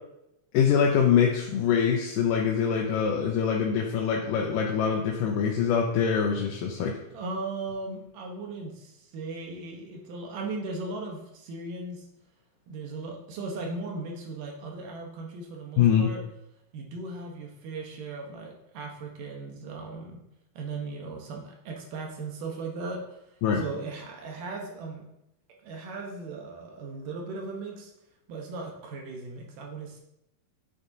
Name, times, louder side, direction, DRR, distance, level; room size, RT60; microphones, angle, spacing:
voice 1, 0.5-6.9 15.8-16.1 23.4-23.6, left 7 dB, 85° left, -1 dB, 2.4 m, -24 dB
voice 2, 7.1-12.0 12.7-16.2 16.7-20.2 20.6-23.0 23.5-25.0 25.6-27.9 28.3-30.0, right 3 dB, 80° right, 0 dB, 2.7 m, -37 dB
8.6 x 6.6 x 2.7 m, 0.82 s
omnidirectional pair, 3.8 m